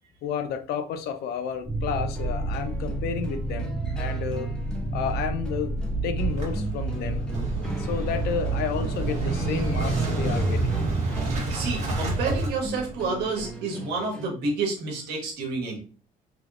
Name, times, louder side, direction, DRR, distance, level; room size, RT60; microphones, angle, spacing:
voice 1, 0.2-3.7 4.0-4.5 4.9-5.7 6.0-7.2 7.8-10.8, left 7 dB, 70° left, 8 dB, 0.5 m, -31 dB
sound 1, 1.6-11.4, right 3 dB, 35° left, 1.1 m, -30 dB
sound 2, 2.0-14.3, equal, 5° left, 0.8 m, -40 dB
Motorcycle / Engine starting, 6.3-13.5, right 2 dB, 45° right, 1.4 m, -29 dB
voice 2, 11.5-15.8, right 4 dB, 75° right, 1 dB, 1.2 m, -29 dB
3.3 x 2.9 x 2.4 m, 0.39 s
cardioid pair, 110°, 17 cm